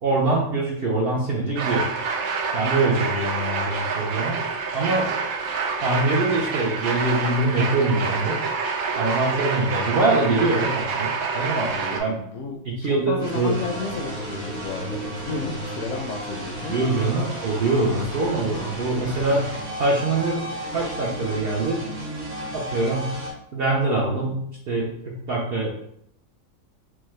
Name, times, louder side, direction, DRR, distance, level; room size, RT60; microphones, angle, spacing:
voice 1, 0.0-1.9 2.5-4.4 4.7-5.1 5.8-8.4 9.0-12.2 12.6-13.5 16.7-19.5 19.8-21.8 22.5-23.2 23.5-25.8, right 2 dB, 60° right, -2 dB, 0.6 m, -24 dB
sound 1, 1.6-12.0, right 5 dB, 80° right, 1.1 m, -27 dB
voice 2, 11.7-16.8, left 4 dB, 70° left, 2 dB, 0.8 m, -33 dB
sound 2, 13.2-23.3, right 1 dB, 30° right, 0.8 m, -33 dB
4.7 x 2.1 x 3.1 m, 0.72 s
omnidirectional pair, 1.5 m